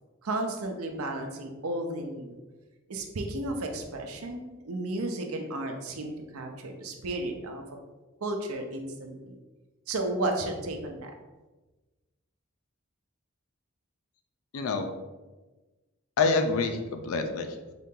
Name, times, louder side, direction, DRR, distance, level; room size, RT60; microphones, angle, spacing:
voice 1, 0.2-2.4 2.9-7.6 8.2-9.4 9.9-11.1, right 2 dB, 80° right, 4 dB, 0.6 m, -33 dB
voice 2, 14.5-14.9 16.2-17.7, left 4 dB, 75° left, 6 dB, 0.4 m, -27 dB
3.9 x 2.8 x 3.7 m, 1.2 s
head